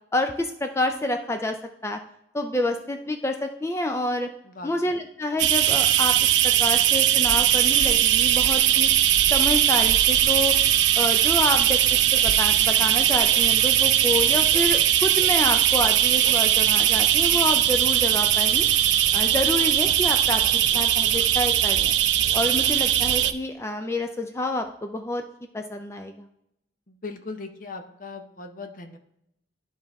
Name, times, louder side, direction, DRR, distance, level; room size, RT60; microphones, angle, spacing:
voice 1, 0.1-1.6 1.8-2.0 2.3-4.3 4.6-8.9 9.3-10.5 11.0-11.8 12.1-18.7 19.1-21.9 22.3-25.2 25.5-26.3, left 2 dB, 15° left, 5 dB, 0.4 m, -28 dB
voice 2, 4.4-5.0 26.9-29.0, left 3 dB, 50° left, 6 dB, 0.8 m, -39 dB
sound 1, 5.4-23.3, right 11 dB, 80° right, 0.4 m, -20 dB
12.0 x 4.0 x 3.5 m, 0.77 s
head